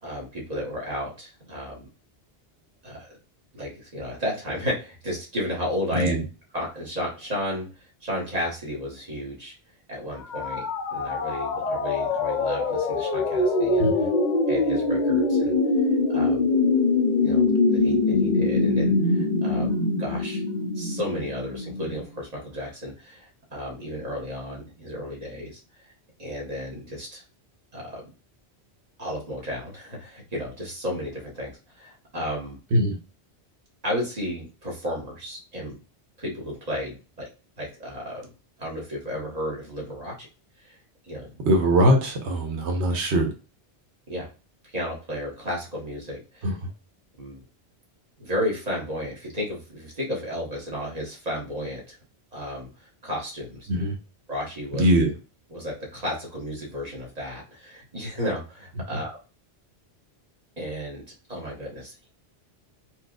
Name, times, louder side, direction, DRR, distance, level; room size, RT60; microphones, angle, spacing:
voice 1, 0.0-1.9 2.8-3.1 3.5-6.1 6.5-9.5 9.9-10.6 10.9-13.9 14.5-16.5 17.2-20.4 20.7-25.9 26.2-27.2 27.7-28.1 29.0-32.6 33.8-35.8 36.2-37.3 37.6-38.3 38.6-40.3 40.6-40.8 41.0-41.3 44.1-44.3 44.7-46.5 47.2-47.4 48.2-52.0 52.3-52.7 53.0-53.7 54.3-54.9 55.5-59.2 60.6-61.0 61.3-62.1, equal, 35° right, -4 dB, 1.4 m, -33 dB
sound 1, 10.2-22.0, left 3 dB, 50° left, 0.6 m, -23 dB
voice 2, 41.5-43.3 46.4-46.5 53.7-53.9 54.8-55.1, right 1 dB, 85° right, 2 dB, 1.1 m, -21 dB
4.4 x 2.3 x 2.3 m, 0.33 s
omnidirectional pair, 1.1 m